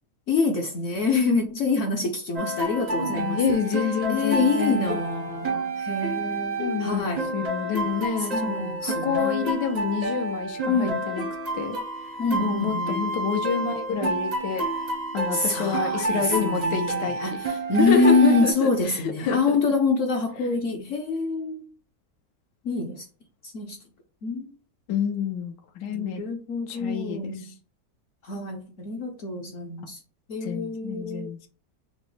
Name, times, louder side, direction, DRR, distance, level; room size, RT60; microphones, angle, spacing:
voice 1, 0.3-3.6 4.1-7.3 8.2-9.6 10.7-11.1 12.2-13.0 15.3-21.7 22.6-23.1 23.4-23.8 24.2-24.5 25.9-27.5 28.2-30.0 30.3-31.3, left 3 dB, 65° left, 0.8 m, -26 dB
sound 1, 2.4-18.5, right 2 dB, 50° right, 0.5 m, -29 dB
voice 2, 2.9-5.0 6.6-11.2 11.5-11.8 12.4-14.6 15.1-17.1 17.8-19.6 24.9-26.2 26.7-27.5 30.4-31.5, left 7 dB, 90° left, 1.3 m, -28 dB
5.9 x 2.1 x 3.1 m
omnidirectional pair, 1.8 m